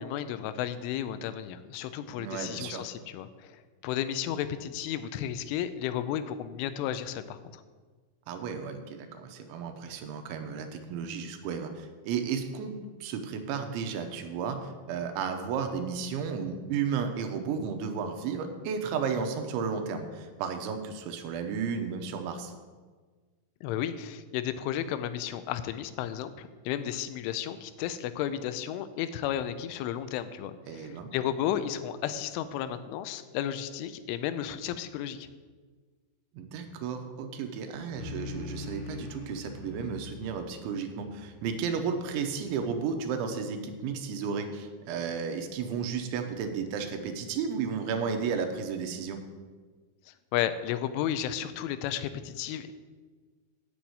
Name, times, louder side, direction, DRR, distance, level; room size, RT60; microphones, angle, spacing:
voice 1, 0.0-7.6 23.6-35.3 50.1-52.7, left 10 dB, 90° left, 12 dB, 3.1 m, -33 dB
voice 2, 2.2-2.9 8.3-22.5 30.7-31.1 36.3-49.2, right 6 dB, 85° right, 6 dB, 3.1 m, -33 dB
sound 1, 37.9-43.5, left 3 dB, 70° left, 1.5 m, -44 dB
7.9 x 7.2 x 8.5 m, 1.4 s
omnidirectional pair, 5.5 m